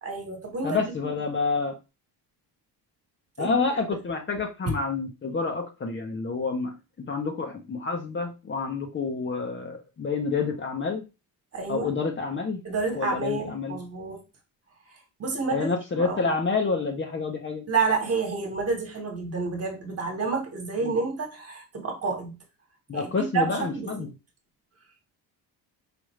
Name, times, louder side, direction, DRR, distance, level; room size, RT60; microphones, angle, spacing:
voice 1, 0.0-1.1 3.4-3.7 11.5-11.9 12.6-14.2 15.2-15.7 15.9-16.2 17.7-22.3 22.9-23.9, right 4 dB, 35° right, 1.4 m, -29 dB
voice 2, 0.6-1.8 3.4-11.0 11.7-12.6 13.0-13.8 15.5-17.6 20.8-20.9 22.9-24.1, left 4 dB, 30° left, 0.8 m, -28 dB
5.0 x 2.6 x 3.1 m
cardioid pair, 125°, 40 cm